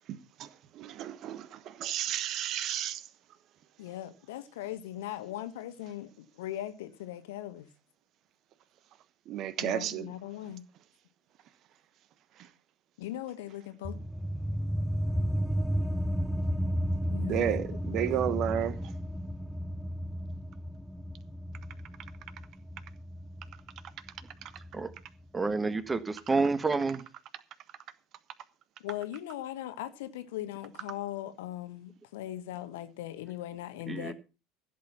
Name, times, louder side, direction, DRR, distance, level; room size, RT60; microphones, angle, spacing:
voice 1, 0.1-3.1 9.3-10.1 12.4-12.5 17.2-18.9, right 10 dB, 45° right, 1.2 m, -32 dB
voice 2, 3.8-7.7 9.6-10.6 13.0-14.0 17.1-17.6 18.1-18.4 28.8-34.1, left 13 dB, 60° left, 1.3 m, -39 dB
sound 1, 13.8-24.9, equal, ahead, 0.7 m, -33 dB
voice 3, 25.3-27.0 33.9-34.1, right 3 dB, 15° right, 1.4 m, -29 dB
15.0 x 8.3 x 5.6 m
figure-of-eight pair, 70°, 0 cm